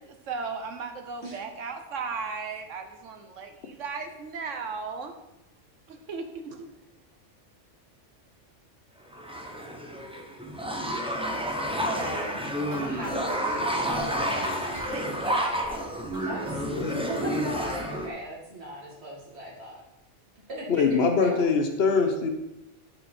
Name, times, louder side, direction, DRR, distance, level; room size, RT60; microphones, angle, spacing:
voice 1, 0.3-5.1 5.9-6.7 14.9-15.5, right 4 dB, 85° right, 6 dB, 1.4 m, -36 dB
sound 1, 9.1-18.1, equal, 5° right, 0.8 m, -30 dB
voice 2, 11.9-14.7 15.4-15.6 16.2-16.7 17.0-19.8 20.5-21.5, right 1 dB, 60° right, -5 dB, 2.2 m, -38 dB
sound 2, 12.7-17.0 17.4-17.5 17.9-18.0 18.2-18.3 18.6-18.7, left 1 dB, 45° right, 2.4 m, -46 dB
voice 3, 16.7-17.1 20.7-22.3, left 5 dB, 60° left, 5 dB, 1.2 m, -23 dB
12.0 x 4.8 x 4.4 m, 0.92 s
omnidirectional pair, 1.2 m